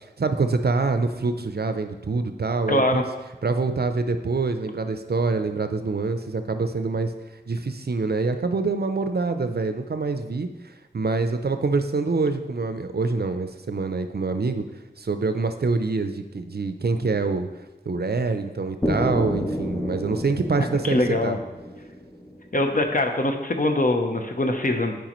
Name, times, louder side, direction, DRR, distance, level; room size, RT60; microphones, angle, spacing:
voice 1, 0.0-3.0 3.4-7.1 7.5-14.6 15.0-17.5 17.9-21.4, right 3 dB, 60° right, 8 dB, 0.5 m, -25 dB
voice 2, 2.7-3.0 20.6-21.4 22.5-25.0, left 1 dB, 50° left, 4 dB, 0.8 m, -23 dB
sound 1, 18.8-22.7, equal, 15° left, 0.8 m, -30 dB
9.0 x 4.8 x 3.0 m, 1.1 s
wide cardioid pair, 50°, 18 cm